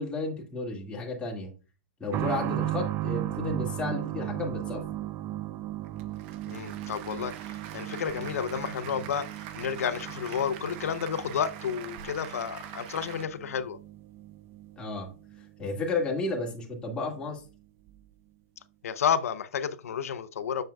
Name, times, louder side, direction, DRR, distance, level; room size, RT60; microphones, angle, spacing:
voice 1, 0.0-1.5 2.0-4.8 14.8-15.1 15.6-17.4, left 3 dB, 10° left, 1.9 m, -32 dB
sound 1, 2.1-16.5 16.8-16.9 17.9-18.0, right 14 dB, 25° right, 0.4 m, -37 dB
Applause, 5.8-13.2, right 10 dB, 45° right, 0.8 m, -44 dB
voice 2, 6.5-9.3 9.5-13.8 18.8-20.6, left 7 dB, 80° left, 0.6 m, -31 dB
7.2 x 6.6 x 2.3 m
hypercardioid pair, 135°, 8 cm